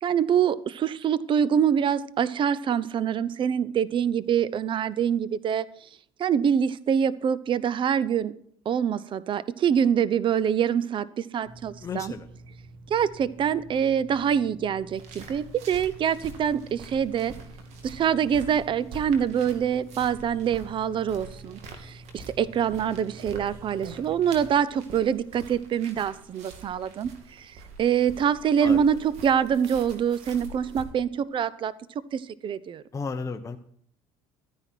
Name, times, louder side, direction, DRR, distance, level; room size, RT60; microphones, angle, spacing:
voice 1, 0.0-5.6 6.2-8.3 8.6-12.1 12.9-17.3 17.8-27.1 27.4-27.5 27.8-31.7 32.1-32.8, right 8 dB, 45° right, 18 dB, 0.8 m, -25 dB
sound 1, 11.4-24.5, right 2 dB, 85° right, 1.7 m, -47 dB
voice 2, 11.8-12.3 28.6-28.8 32.9-33.6, left 5 dB, 25° left, 5 dB, 1.0 m, -33 dB
sound 2, 14.9-30.8, right 3 dB, 65° right, 2.5 m, -46 dB
13.5 x 10.0 x 4.5 m, 0.62 s
supercardioid pair, 85°, 12 cm